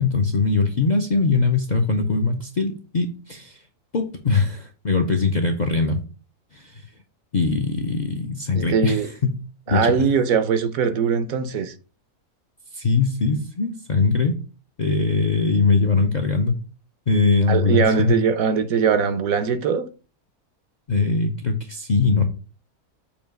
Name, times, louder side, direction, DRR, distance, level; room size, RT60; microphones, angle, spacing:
voice 1, 0.0-3.6 3.9-6.0 6.5-6.8 7.3-9.4 9.7-9.9 12.7-14.4 14.8-16.6 17.1-18.1 20.9-22.2, left 4 dB, 45° left, 0.6 m, -21 dB
voice 2, 8.5-9.1 9.7-11.7 17.5-19.9, right 6 dB, 70° right, 1.1 m, -21 dB
7.1 x 2.9 x 5.1 m
omnidirectional pair, 1.6 m